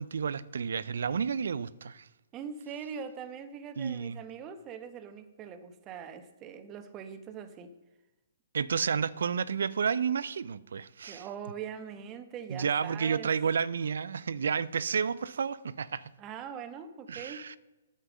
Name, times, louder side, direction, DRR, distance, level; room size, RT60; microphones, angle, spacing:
voice 1, 0.0-2.1 3.8-4.2 8.5-11.3 12.5-16.1 17.1-17.6, right 6 dB, 65° right, 0.5 m, -31 dB
voice 2, 2.3-7.7 11.0-13.3 16.2-17.4, right 7 dB, 25° right, 1.1 m, -42 dB
9.2 x 7.1 x 6.3 m
figure-of-eight pair, 130°, 0 cm